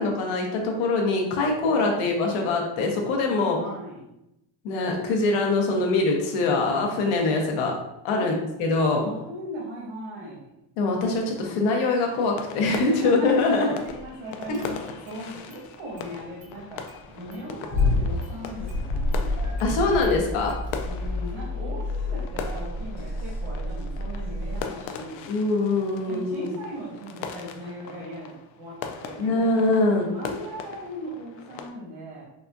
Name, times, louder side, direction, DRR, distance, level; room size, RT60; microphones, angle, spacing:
voice 1, 0.0-3.6 4.6-7.7 8.0-8.3 8.6-9.1 10.8-13.7 14.5-14.6 19.6-20.5 25.3-26.5 29.2-30.1, left 3 dB, 80° left, 1 dB, 0.9 m, -23 dB
voice 2, 1.6-2.2 3.3-4.1 8.2-8.3 9.0-10.5 12.8-13.3 13.6-16.8 17.1-19.7 20.8-25.3 26.0-28.7 29.0-29.5 30.0-32.3, right 1 dB, 70° right, -6 dB, 1.2 m, -38 dB
sound 1, 12.0-31.7, left 6 dB, 65° left, 0.5 m, -40 dB
Car / Engine starting, 13.8-14.1 14.4-15.2 15.5-16.6 16.9-24.6, left 1 dB, 20° right, 0.4 m, -32 dB
sound 2, 17.7-18.1 18.6-19.2 19.7-20.3 20.8-21.3 21.9-22.3 23.0-23.3 24.3-24.4, left 3 dB, 30° left, 0.8 m, -27 dB
4.1 x 2.3 x 2.5 m, 0.86 s
cardioid pair, 155°, 49 cm